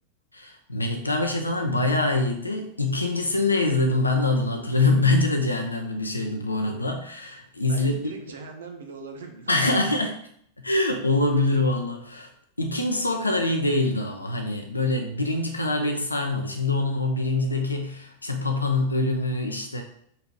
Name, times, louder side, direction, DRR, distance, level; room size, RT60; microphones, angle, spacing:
voice 1, 0.3-7.9 9.5-10.2 10.6-12.3 12.6-19.8, left 2 dB, 80° left, 3 dB, 0.7 m, -24 dB
voice 2, 7.7-9.8, right 4 dB, 65° right, 4 dB, 1.0 m, -41 dB
4.4 x 4.2 x 5.1 m, 0.68 s
figure-of-eight pair, 90°, 0 cm